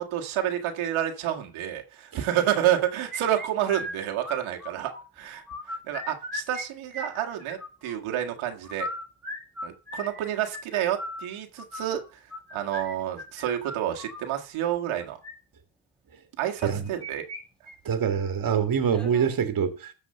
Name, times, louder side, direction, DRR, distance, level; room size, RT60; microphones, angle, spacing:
voice 1, 0.0-8.9 9.6-12.2 12.5-15.2 16.4-17.3, right 11 dB, 85° right, 1.9 m, -29 dB
sound 1, 3.1-5.0 5.3-6.7 6.9-7.9 8.6-14.3 15.0-15.3 16.6-17.4 17.7-17.8 18.2-18.3 18.9-19.3, left 1 dB, ahead, 3.9 m, -38 dB
voice 2, 17.9-19.9, right 7 dB, 45° right, 2.0 m, -25 dB
13.5 x 4.9 x 6.6 m
cardioid pair, 100°, 48 cm